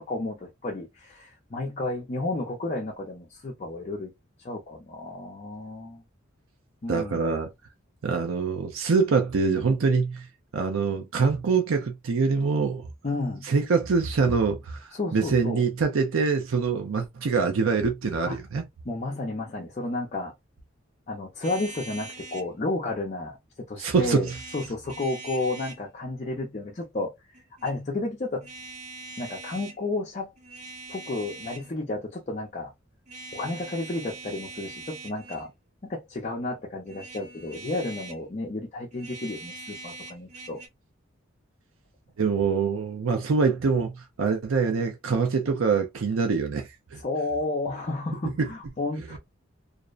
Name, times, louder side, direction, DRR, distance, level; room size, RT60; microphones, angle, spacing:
voice 1, 0.1-4.1 4.4-6.0 6.8-7.3 13.0-13.5 14.9-15.6 18.3-18.4 18.9-20.3 21.1-23.4 23.7-27.1 27.6-28.5 29.2-30.3 30.9-32.7 33.3-35.5 35.8-40.6 47.0-49.2, left 2 dB, 35° left, 0.6 m, -32 dB
voice 2, 6.9-7.5 8.0-10.3 10.5-12.8 13.4-14.8 15.1-18.6 23.8-24.2 42.2-47.0 48.4-48.5 49.1-49.2, right 5 dB, 85° right, 0.5 m, -24 dB
sound 1, 21.4-22.5 24.2-25.8 27.3-27.8 28.4-29.8 30.4-31.7 33.1-35.5 36.9-38.2 38.9-40.7, right 3 dB, 35° right, 0.6 m, -42 dB
2.5 x 2.1 x 2.4 m
head